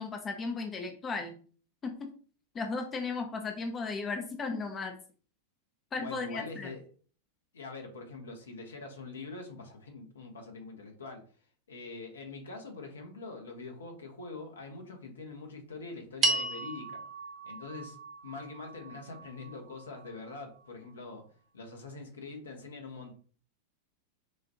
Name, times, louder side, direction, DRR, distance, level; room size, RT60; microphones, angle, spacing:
voice 1, 0.0-1.4 1.8-2.1 2.5-5.0 5.9-6.7, left 4 dB, 25° left, 4 dB, 0.7 m, -35 dB
voice 2, 6.0-6.8 7.5-11.2 11.7-17.0 17.4-18.0 18.2-21.2 21.5-23.1, left 3 dB, 70° left, 3 dB, 1.1 m, -44 dB
sound 1, 16.2-20.7, right 3 dB, 30° right, 0.7 m, -35 dB
6.3 x 2.5 x 2.8 m, 0.42 s
figure-of-eight pair, 90°, 0 cm